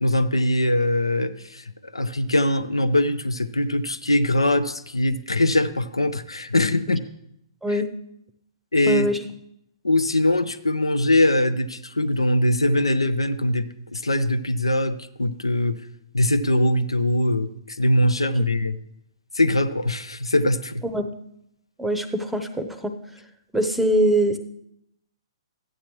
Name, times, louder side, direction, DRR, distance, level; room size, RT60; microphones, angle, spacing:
voice 1, 0.0-1.6 1.9-7.0 7.7-7.8 8.7-9.1 9.8-15.8 16.1-18.8 19.3-20.8, left 1 dB, 90° left, 11 dB, 0.5 m, -22 dB
voice 2, 8.9-9.2 20.8-21.1 21.8-22.9 23.5-24.4, right 1 dB, 5° right, 8 dB, 0.7 m, -22 dB
13.5 x 8.9 x 3.1 m, 0.76 s
figure-of-eight pair, 120°, 3 cm